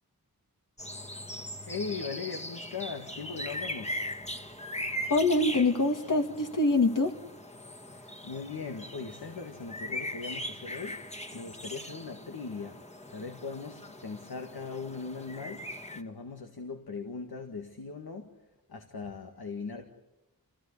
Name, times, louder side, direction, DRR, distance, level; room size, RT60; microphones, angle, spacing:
sound 1, 0.8-16.0, left 1 dB, 20° left, 1.8 m, -40 dB
voice 1, 1.7-4.0 7.9-11.1 11.3-19.9, left 4 dB, 80° left, 1.9 m, -40 dB
voice 2, 5.1-7.1, left 2 dB, 55° left, 2.1 m, -25 dB
27.5 x 17.0 x 8.4 m
wide cardioid pair, 65°, 37 cm